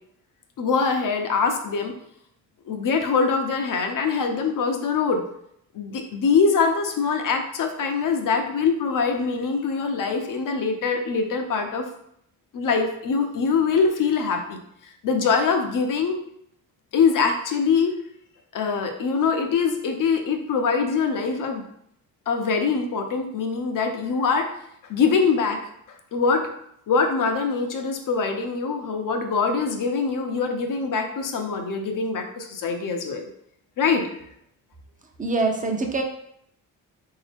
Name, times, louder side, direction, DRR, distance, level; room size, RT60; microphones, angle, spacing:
voice 1, 0.6-1.9 2.7-5.2 5.7-11.9 12.5-14.6 15.0-16.2 16.9-17.9 18.5-21.6 22.3-24.5 24.9-25.6 26.1-26.5 26.9-33.3 33.8-34.0, left 5 dB, 60° left, 5 dB, 0.7 m, -23 dB
voice 2, 35.2-36.0, right 3 dB, 20° right, 3 dB, 0.7 m, -24 dB
3.8 x 2.7 x 3.4 m, 0.72 s
cardioid pair, 70°, 36 cm